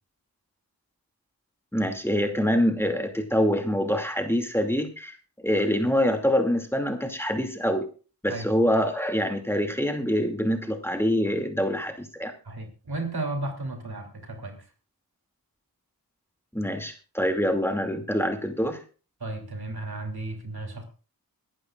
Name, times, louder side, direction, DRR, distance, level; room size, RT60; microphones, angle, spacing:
voice 1, 1.7-5.2 5.4-7.9 8.2-12.3 16.5-18.8, equal, 5° left, 4 dB, 2.6 m, -25 dB
voice 2, 12.4-14.7 19.2-20.8, right 2 dB, 80° right, 3 dB, 3.1 m, -34 dB
23.0 x 11.5 x 2.5 m, 0.37 s
cardioid pair, 40°, 37 cm